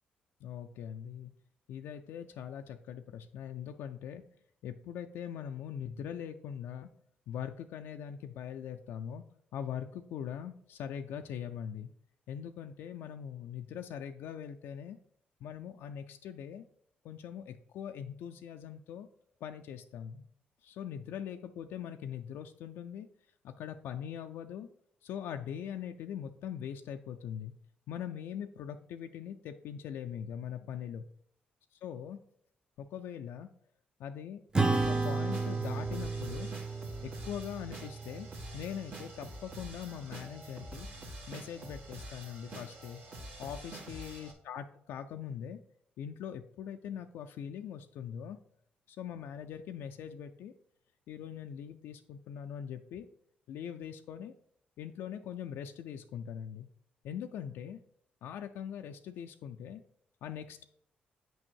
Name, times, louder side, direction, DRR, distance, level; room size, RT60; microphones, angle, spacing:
voice 1, 0.4-1.3 1.7-4.2 4.6-6.9 7.3-9.2 9.5-11.9 12.3-15.0 15.4-16.6 17.0-19.1 19.4-20.2 20.6-23.1 23.4-24.7 25.0-27.5 27.9-31.0 31.7-32.2 32.8-33.5 34.0-34.4 34.7-36.5 37.0-38.3 38.5-40.9 41.3-43.0 43.4-45.6 46.0-48.4 48.9-50.5 51.1-53.1 53.5-54.3 54.8-56.7 57.0-57.8 58.2-59.8 60.2-60.6, left 9 dB, 85° left, 6 dB, 0.4 m, -42 dB
Acoustic guitar / Strum, 34.5-39.3, right 3 dB, 20° right, 0.7 m, -33 dB
sound 1, 34.7-44.3, right 1 dB, 65° right, 1.6 m, -47 dB
6.2 x 5.2 x 4.5 m, 0.66 s
cardioid pair, 75°, 4 cm